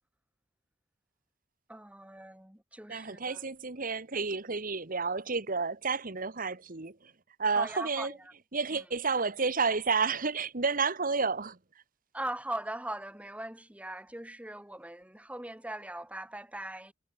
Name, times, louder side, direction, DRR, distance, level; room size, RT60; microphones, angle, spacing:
voice 1, 1.7-3.4 7.6-8.2 12.1-16.9, right 1 dB, 5° right, 1.8 m, -40 dB
voice 2, 2.9-7.1 7.4-8.1 8.5-11.6, right 4 dB, 45° right, 1.6 m, -30 dB
head